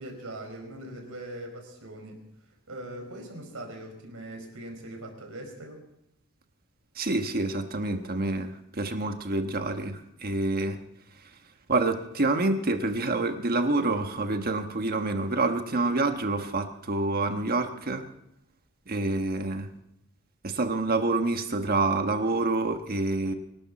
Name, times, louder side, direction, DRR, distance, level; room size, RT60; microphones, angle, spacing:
voice 1, 0.0-2.2 2.7-5.8, right 1 dB, 65° right, 3 dB, 4.9 m, -41 dB
voice 2, 6.9-10.8 11.7-18.0 18.9-19.7 20.4-23.3, right 2 dB, 45° right, 6 dB, 1.3 m, -27 dB
25.0 x 12.5 x 4.2 m, 0.80 s
head